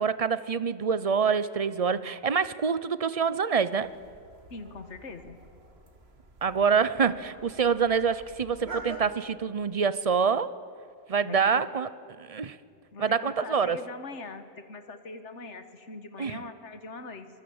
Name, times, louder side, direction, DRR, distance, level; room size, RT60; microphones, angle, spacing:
voice 1, 0.0-3.9 6.4-10.5 11.1-11.9 12.2-12.6 13.0-13.8 16.2-16.4, right 6 dB, 35° right, 16 dB, 0.7 m, -26 dB
sound 1, 3.8-9.1, right 3 dB, 60° right, 2.2 m, -46 dB
voice 2, 4.5-5.4 11.2-11.7 12.9-17.3, left 3 dB, 85° left, 9 dB, 1.8 m, -42 dB
24.0 x 21.0 x 8.8 m, 2.3 s
omnidirectional pair, 1.2 m